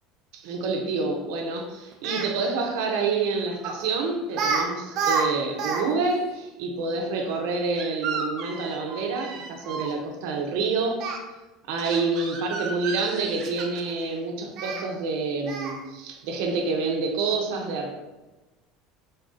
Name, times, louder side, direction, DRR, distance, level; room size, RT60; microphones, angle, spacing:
voice 1, 0.3-11.0 11.7-18.0, right 4 dB, 75° right, 1 dB, 0.8 m, -28 dB
Speech, 1.9-2.3 3.6-3.8 4.3-4.6 4.9-5.8 6.1-6.2 7.8-9.9 11.0-11.2 11.8-13.9 14.6-14.8 15.5-15.8, right 5 dB, 50° right, 0.6 m, -30 dB
4.0 x 2.7 x 3.8 m, 1.1 s
cardioid pair, 145°, 0 cm